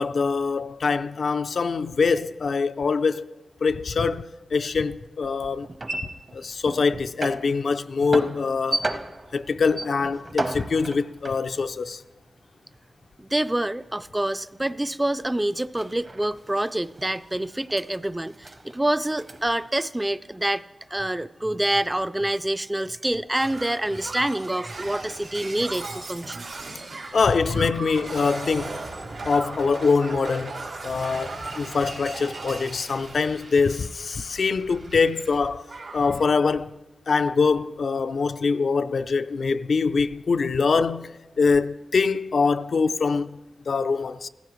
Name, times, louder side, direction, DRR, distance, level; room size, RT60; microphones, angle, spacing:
voice 1, 0.0-3.3 3.6-5.7 6.3-8.8 9.3-12.0 27.1-28.8 29.2-35.6 35.9-36.8 37.1-43.4 43.7-44.3, left 4 dB, 75° left, 0.4 m, -24 dB
sound 1, 5.2-12.9 13.2-19.7, right 2 dB, 40° right, 0.8 m, -35 dB
voice 2, 13.2-20.6 20.9-26.4, right 1 dB, 15° right, 0.3 m, -26 dB
Shatter, 23.3-35.4 35.7-36.3 37.3-37.5, right 3 dB, 90° right, 2.6 m, -37 dB
16.0 x 14.5 x 3.1 m
wide cardioid pair, 80°, 0 cm